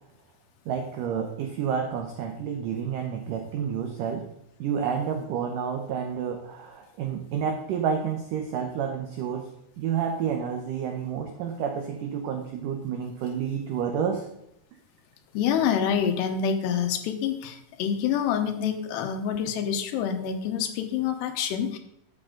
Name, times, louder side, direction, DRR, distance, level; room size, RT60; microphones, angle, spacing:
voice 1, 0.7-4.3 4.6-9.5 9.8-14.2, right 7 dB, 75° right, 3 dB, 2.0 m, -30 dB
voice 2, 15.3-21.8, left 8 dB, 85° left, 6 dB, 3.1 m, -27 dB
11.5 x 7.9 x 3.8 m, 0.79 s
omnidirectional pair, 4.8 m